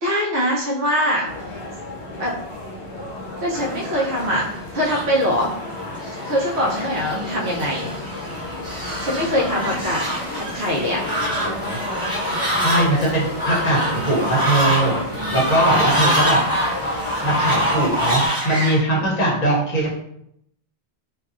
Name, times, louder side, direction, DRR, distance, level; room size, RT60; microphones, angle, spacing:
voice 1, 0.0-1.3 2.2-2.4 3.4-4.5 4.7-5.5 6.2-7.9 9.0-10.0 10.3-11.0 15.2-15.5, equal, 65° right, -5 dB, 0.8 m, -22 dB
sound 1, 1.2-18.3, left 2 dB, 80° left, 1.0 m, -32 dB
Fowl, 4.0-18.8, equal, 5° right, 0.8 m, -25 dB
voice 2, 11.4-11.8 12.6-14.9 15.3-16.4 17.2-19.9, right 1 dB, 40° left, -4 dB, 0.8 m, -21 dB
2.6 x 2.3 x 2.4 m, 0.73 s
omnidirectional pair, 1.1 m